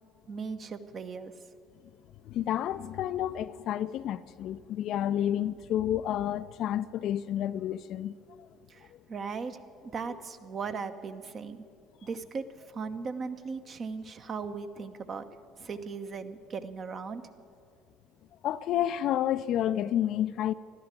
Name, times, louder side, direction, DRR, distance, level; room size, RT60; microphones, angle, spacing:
voice 1, 0.3-1.3 8.7-11.6 12.0-12.4 12.7-15.3 15.6-17.2, right 5 dB, 40° right, 1.0 m, -38 dB
voice 2, 2.2-8.1 18.4-20.5, left 11 dB, 55° left, 0.4 m, -30 dB
13.0 x 12.0 x 9.0 m
figure-of-eight pair, 55°, 0 cm